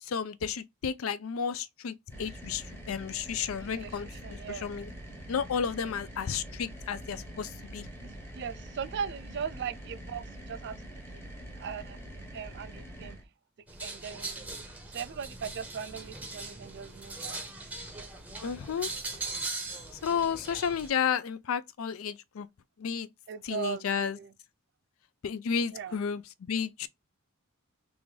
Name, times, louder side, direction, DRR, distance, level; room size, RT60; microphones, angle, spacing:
voice 1, 0.0-4.9 5.3-7.9 18.4-18.9 20.0-22.5 22.8-23.1 23.4-24.2 25.2-26.2 26.5-26.9, left 7 dB, 70° left, 0.4 m, -32 dB
sound 1, 2.1-13.2, right 1 dB, 10° left, 1.0 m, -45 dB
voice 2, 3.6-4.7 5.8-5.9 8.3-10.8 11.1-11.2 11.6-13.2 13.8-14.5 14.9-17.4 20.2-20.3 23.3-24.3 25.7-25.9, right 7 dB, 55° right, 0.4 m, -39 dB
sound 2, 13.7-20.9, right 3 dB, 5° right, 0.7 m, -40 dB
3.6 x 2.5 x 3.2 m
head